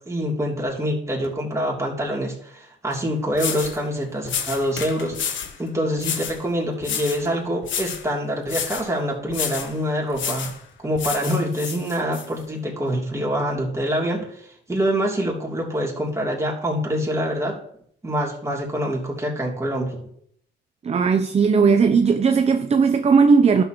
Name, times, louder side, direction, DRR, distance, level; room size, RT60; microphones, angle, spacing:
voice 1, 0.1-10.5 10.8-17.6 18.0-20.0, equal, 15° right, 3.0 m, -25 dB
sound 1, 2.9-3.0 3.3-3.8 4.3-5.6 6.0-6.4 6.8-7.3 7.6-8.1 8.5-8.9 9.3-9.7 10.1-10.6 11.0-12.3, left 7 dB, 70° left, 1.3 m, -30 dB
voice 2, 20.8-23.6, right 5 dB, 30° right, 0.6 m, -17 dB
12.0 x 6.9 x 3.0 m
cardioid pair, 90°, 20 cm